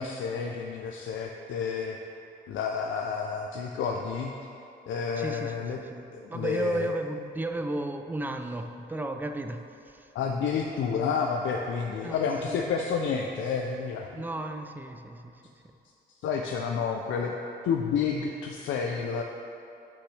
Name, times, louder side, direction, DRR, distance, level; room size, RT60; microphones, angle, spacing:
voice 1, 0.0-2.0 2.5-4.3 4.9-5.8 6.1-6.9 10.1-14.1 16.2-17.3 17.6-19.2, left 6 dB, 75° left, 2 dB, 0.6 m, -30 dB
voice 2, 5.2-10.1 12.0-12.6 14.1-15.4, right 1 dB, 10° right, 7 dB, 0.5 m, -34 dB
11.5 x 5.9 x 3.3 m, 2.7 s
cardioid pair, 90°, 20 cm